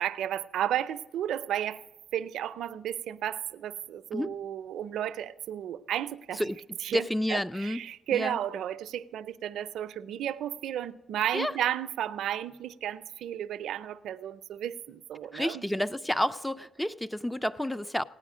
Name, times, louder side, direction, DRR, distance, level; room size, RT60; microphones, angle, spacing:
voice 1, 0.0-1.8 2.1-6.4 6.8-15.6, right 11 dB, 75° right, 0.5 m, -33 dB
voice 2, 6.9-7.8 8.1-8.4 11.3-11.5 15.3-18.0, left 1 dB, 5° left, 0.5 m, -30 dB
17.0 x 9.5 x 5.0 m
cardioid pair, 90°, 0 cm